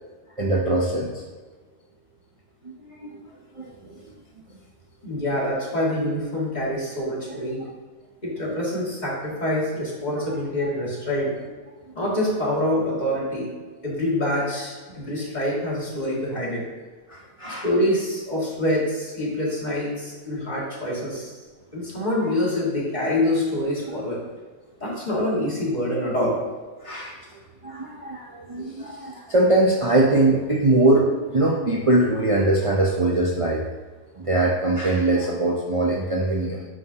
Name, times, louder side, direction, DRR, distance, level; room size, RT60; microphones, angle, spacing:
voice 1, 0.4-1.1 2.6-3.1 3.6-4.0 7.3-7.4 10.2-10.3 17.1-17.7 26.8-27.2 27.6-33.6 34.2-36.7, right 2 dB, 50° right, -3 dB, 0.4 m, -22 dB
voice 2, 5.0-7.6 8.2-11.3 11.9-13.5 13.8-16.6 17.4-21.3 21.7-24.2 24.8-26.4, left 1 dB, 25° left, -6 dB, 2.2 m, -25 dB
9.2 x 6.2 x 2.9 m, 1.4 s
omnidirectional pair, 1.7 m